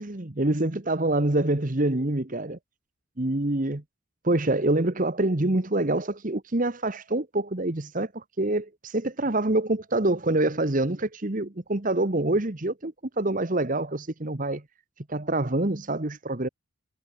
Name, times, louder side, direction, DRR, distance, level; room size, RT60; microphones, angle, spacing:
voice 1, 0.0-2.6 3.2-3.8 4.2-14.6 15.1-16.5, right 2 dB, 40° right, 1.3 m, -26 dB
head